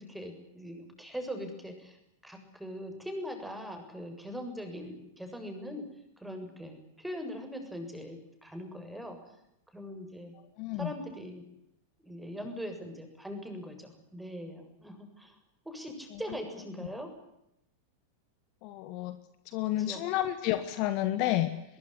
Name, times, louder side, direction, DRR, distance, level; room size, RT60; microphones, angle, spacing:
voice 1, 0.0-2.0 2.2-5.8 6.2-9.2 9.7-10.3 10.8-11.4 12.0-15.3 15.7-17.1 19.8-20.0, equal, 5° right, 5 dB, 7.3 m, -41 dB
voice 2, 10.6-10.9 16.1-16.2 18.6-19.2 19.5-21.5, left 14 dB, 45° left, 11 dB, 1.8 m, -30 dB
22.5 x 22.5 x 9.9 m, 0.82 s
figure-of-eight pair, 90°, 0 cm